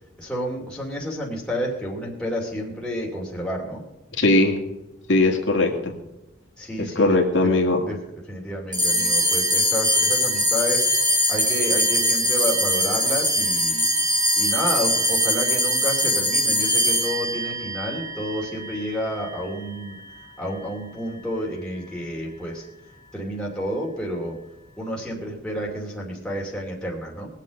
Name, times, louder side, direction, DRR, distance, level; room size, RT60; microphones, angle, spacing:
voice 1, 0.2-3.8 6.6-7.5 7.9-8.0 8.3-10.8 11.3-13.8 14.3-20.0 20.4-22.6 23.1-24.3 24.8-27.3, equal, 5° left, -4 dB, 2.7 m, -30 dB
voice 2, 4.2-4.6 5.1-5.9 7.0-7.8, left 2 dB, 65° left, 2 dB, 2.1 m, -19 dB
sound 1, 8.7-19.4, equal, 20° right, 2.0 m, -22 dB
21.0 x 7.5 x 5.3 m, 0.95 s
head